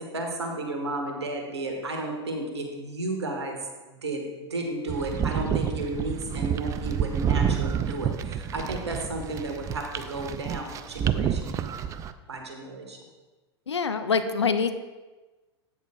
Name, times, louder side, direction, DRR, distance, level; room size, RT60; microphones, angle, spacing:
voice 1, 0.0-3.6 3.9-11.6 12.3-13.0, right 2 dB, 75° right, 3 dB, 1.5 m, -33 dB
sound 1, 4.9-12.1, right 8 dB, 20° right, 0.4 m, -29 dB
voice 2, 13.7-14.7, left 5 dB, 75° left, 9 dB, 0.6 m, -25 dB
12.5 x 8.7 x 2.3 m, 1.2 s
figure-of-eight pair, 90°, 14 cm